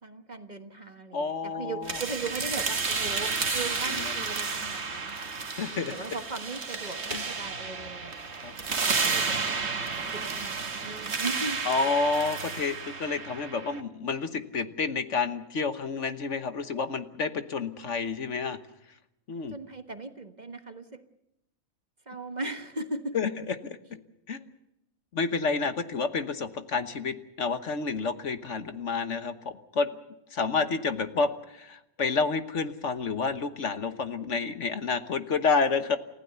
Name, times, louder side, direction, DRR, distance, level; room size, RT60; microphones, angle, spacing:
voice 1, 0.0-5.2 5.7-8.1 8.4-9.5 10.1-11.6 19.5-21.0 22.1-23.2, right 3 dB, 30° right, 7 dB, 1.4 m, -38 dB
voice 2, 1.1-2.0 3.9-4.2 5.6-5.9 7.1-7.2 8.4-8.5 11.6-18.6 19.3-19.5 23.1-23.8 24.3-24.5 25.1-29.9 30.3-36.0, left 4 dB, 60° left, 10 dB, 1.5 m, -29 dB
sound 1, 1.9-13.8, right 4 dB, 50° right, 1.8 m, -31 dB
29.0 x 15.5 x 6.9 m, 0.88 s
omnidirectional pair, 1.4 m